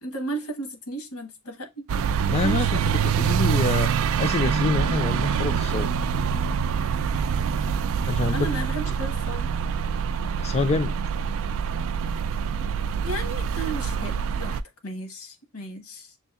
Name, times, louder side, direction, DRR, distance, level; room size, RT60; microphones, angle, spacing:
voice 1, 0.0-1.8 2.4-2.7 8.2-9.5 13.0-16.1, right 2 dB, 85° left, 1.2 m, -34 dB
sound 1, 1.9-14.6, right 7 dB, 65° right, 0.3 m, -25 dB
voice 2, 2.3-3.9 4.2-5.9 8.0-8.4 10.4-10.9, left 3 dB, 30° left, 0.3 m, -26 dB
6.3 x 2.6 x 2.3 m
head